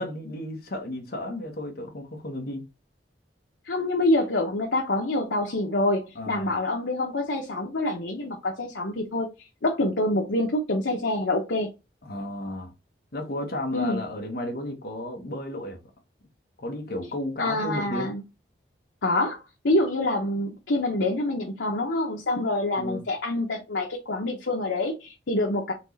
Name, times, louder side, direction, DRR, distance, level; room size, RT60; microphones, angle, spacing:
voice 1, 0.0-2.6 6.1-6.5 12.0-12.7 13.1-15.8 16.6-18.1 22.8-23.0, left 1 dB, 60° left, 1.1 m, -33 dB
voice 2, 3.7-9.3 9.6-11.7 13.7-14.0 17.4-18.2 19.0-25.7, left 2 dB, 90° left, 0.9 m, -26 dB
4.4 x 3.0 x 4.0 m
head